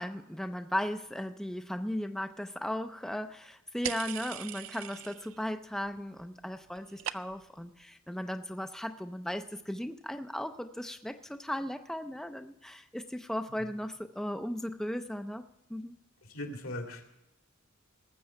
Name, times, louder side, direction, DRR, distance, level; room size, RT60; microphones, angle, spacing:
voice 1, 0.0-15.9, equal, ahead, 8 dB, 0.4 m, -36 dB
sound 1, 3.8-5.4 5.7-6.3 6.5-7.6, right 11 dB, 70° right, 0.4 m, -40 dB
voice 2, 16.3-17.2, left 1 dB, 80° left, 3 dB, 2.4 m, -40 dB
19.0 x 7.5 x 5.7 m, 0.89 s
head